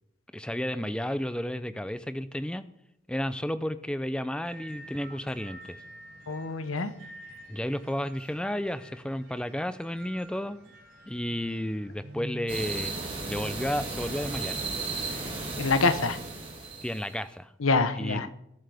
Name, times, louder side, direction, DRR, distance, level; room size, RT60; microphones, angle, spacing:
voice 1, 0.3-2.6 3.1-5.8 7.5-10.7 11.1-12.9 13.3-14.6 16.8-17.5 18.0-18.3, equal, 5° left, 12 dB, 0.4 m, -32 dB
sound 1, 4.4-13.7, right 1 dB, 70° right, 4.5 m, -49 dB
voice 2, 6.3-6.9 15.2-15.3 15.6-16.2 17.6-18.3, left 3 dB, 90° left, 11 dB, 1.0 m, -25 dB
sound 2, 12.5-17.1, right 3 dB, 30° right, 4.0 m, -35 dB
20.5 x 7.6 x 3.5 m, 0.79 s
head